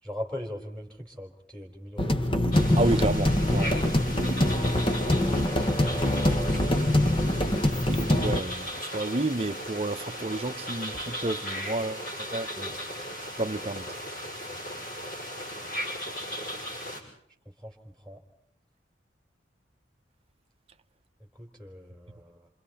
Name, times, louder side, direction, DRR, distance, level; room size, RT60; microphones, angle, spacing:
voice 1, 0.0-2.4 14.5-14.6 17.6-18.2 21.4-22.5, left 1 dB, 5° left, 3.7 m, -40 dB
sound 1, 2.0-8.4, left 1 dB, 30° left, 1.2 m, -24 dB
sound 2, 2.5-17.0, equal, 50° left, 6.8 m, -37 dB
voice 2, 2.8-3.8 8.2-12.7 13.4-13.9, right 2 dB, 30° right, 0.8 m, -30 dB
28.5 x 27.0 x 4.3 m
head